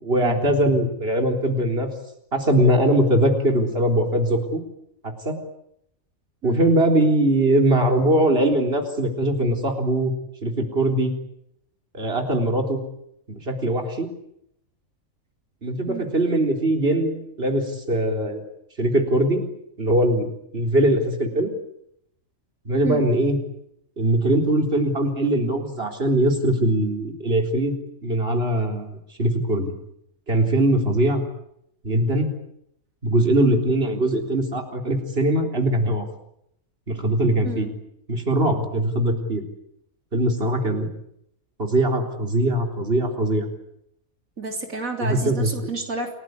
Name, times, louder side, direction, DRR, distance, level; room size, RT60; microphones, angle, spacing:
voice 1, 0.0-1.9 2.3-4.6 5.0-5.4 6.4-10.1 10.4-11.1 11.9-12.8 13.3-14.1 15.6-18.4 18.8-19.4 19.8-21.5 22.7-23.4 24.0-27.7 28.0-29.7 30.3-31.2 31.8-32.3 33.0-36.1 36.9-37.7 38.1-39.4 40.1-40.9 41.6-43.5 45.0-45.7, right 1 dB, 45° right, 3 dB, 4.2 m, -21 dB
voice 2, 44.4-46.1, right 3 dB, 80° right, 3 dB, 3.8 m, -30 dB
30.0 x 19.0 x 9.6 m, 0.77 s
omnidirectional pair, 1.4 m